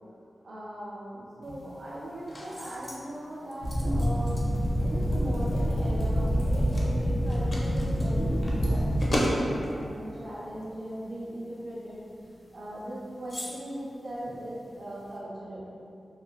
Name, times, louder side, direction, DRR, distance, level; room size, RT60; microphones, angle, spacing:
voice 1, 0.4-12.0 12.5-15.7, right 1 dB, 55° right, -9 dB, 0.5 m, -39 dB
sound 1, 1.4-15.2, equal, 40° left, 0.4 m, -38 dB
sound 2, 3.6-9.2, equal, 80° left, 0.7 m, -26 dB
3.0 x 2.3 x 2.2 m, 2.5 s
wide cardioid pair, 120°, 0 cm